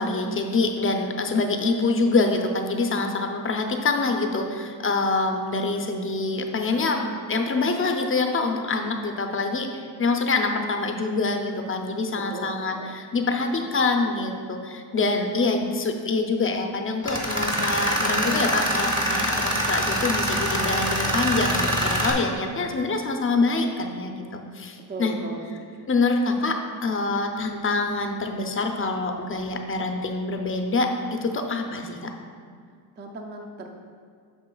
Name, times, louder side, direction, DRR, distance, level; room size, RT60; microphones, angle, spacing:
voice 1, 0.0-7.0 7.3-25.1 25.9-32.1, left 3 dB, 30° left, 4 dB, 0.5 m, -25 dB
voice 2, 12.3-12.9 24.9-25.9 33.0-33.7, right 2 dB, 25° right, 3 dB, 0.4 m, -37 dB
Tools, 17.0-22.1, equal, 10° right, 0.9 m, -24 dB
8.6 x 6.4 x 2.3 m, 2.1 s
wide cardioid pair, 160°, 41 cm